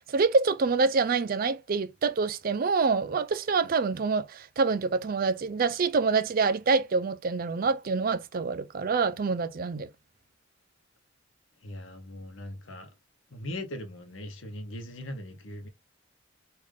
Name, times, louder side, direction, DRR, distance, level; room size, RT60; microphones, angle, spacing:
voice 1, 0.1-9.9, right 4 dB, 50° right, 0.4 m, -26 dB
voice 2, 11.6-12.9 13.3-15.7, left 1 dB, 80° left, 0.9 m, -39 dB
3.4 x 2.5 x 3.6 m
head